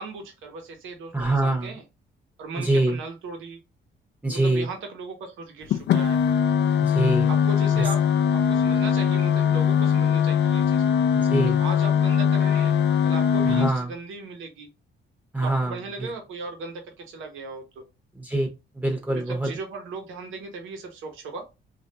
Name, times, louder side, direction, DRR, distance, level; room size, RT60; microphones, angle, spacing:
voice 1, 0.0-1.8 2.4-3.6 4.3-6.2 7.3-8.0 8.3-10.8 11.5-12.8 13.0-14.7 15.4-17.8 19.3-21.5, right 4 dB, 80° right, 4 dB, 0.9 m, -37 dB
voice 2, 1.1-1.7 2.6-3.0 4.2-4.7 6.8-7.3 7.7-7.9 11.1-11.6 13.4-13.9 15.3-16.1 18.1-18.5 18.7-19.5, right 2 dB, 10° right, 2 dB, 0.8 m, -24 dB
sound 1, 5.7-13.7, left 8 dB, 65° left, 0.4 m, -21 dB
3.2 x 2.5 x 2.9 m, 0.26 s
cardioid pair, 90°, 20 cm